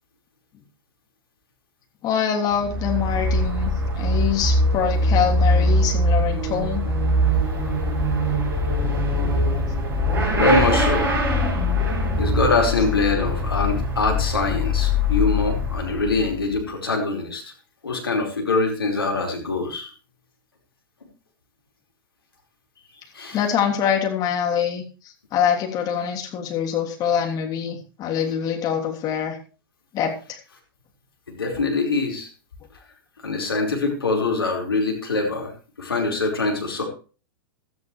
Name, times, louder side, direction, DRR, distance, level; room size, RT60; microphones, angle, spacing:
voice 1, 2.0-6.8 23.3-29.4 29.9-30.4, left 8 dB, 30° left, 2 dB, 3.2 m, -24 dB
Motorcycle / Accelerating revving vroom, 2.5-16.3, left 1 dB, 20° right, 6.2 m, -22 dB
voice 2, 10.3-11.1 12.2-17.5 17.8-19.9 23.1-23.4 31.3-32.3 33.2-35.5 35.8-36.8, left 3 dB, 80° left, 2 dB, 4.8 m, -23 dB
16.5 x 13.0 x 3.3 m, 0.36 s
figure-of-eight pair, 105°, 12 cm